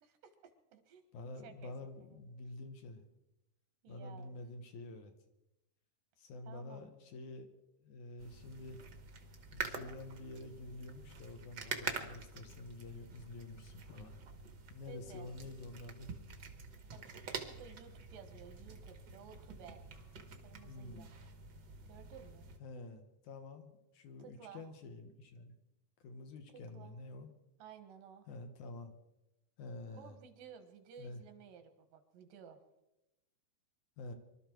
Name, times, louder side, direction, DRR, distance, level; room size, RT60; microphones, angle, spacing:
voice 1, 0.0-1.0 1.4-2.2 3.8-4.4 6.4-6.9 14.9-15.3 16.9-19.8 20.4-21.1 21.9-22.5 24.2-24.7 26.5-27.0 27.6-28.3 29.9-32.6, right 7 dB, 85° right, 8 dB, 3.1 m, -55 dB
voice 2, 1.1-3.0 3.9-5.1 6.2-7.5 7.8-8.8 9.5-14.2 14.7-16.1 20.6-21.1 22.6-25.5 26.0-27.3 28.3-28.9 29.6-30.2 31.0-31.2 34.0-34.1, left 2 dB, 70° left, 6 dB, 2.7 m, -48 dB
sound 1, 8.2-22.6, right 5 dB, 55° right, 1.3 m, -47 dB
24.0 x 12.5 x 4.6 m, 0.93 s
omnidirectional pair, 3.7 m